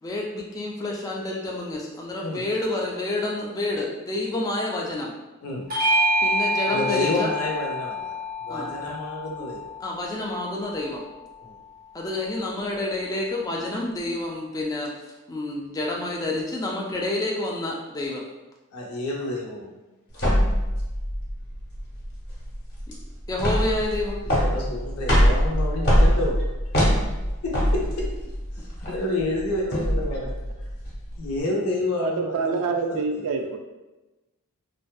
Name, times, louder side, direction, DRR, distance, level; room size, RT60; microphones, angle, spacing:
voice 1, 0.0-5.1 6.2-7.3 8.5-8.7 9.8-11.0 11.9-14.9 15.3-18.2 23.3-24.2, left 2 dB, 15° left, -2 dB, 0.3 m, -29 dB
Bell / Doorbell, 5.7-10.5, equal, 40° right, 0.6 m, -27 dB
voice 2, 6.7-9.6 11.4-11.6 18.7-19.7 24.2-26.3 27.4-28.1 28.5-30.3 31.2-33.3, left 1 dB, 80° left, -2 dB, 0.6 m, -29 dB
sound 1, 20.2-31.4, equal, 50° left, 0.8 m, -23 dB
voice 3, 32.0-33.6, right 4 dB, 80° right, 4 dB, 0.3 m, -26 dB
2.6 x 2.1 x 2.3 m, 1.1 s
head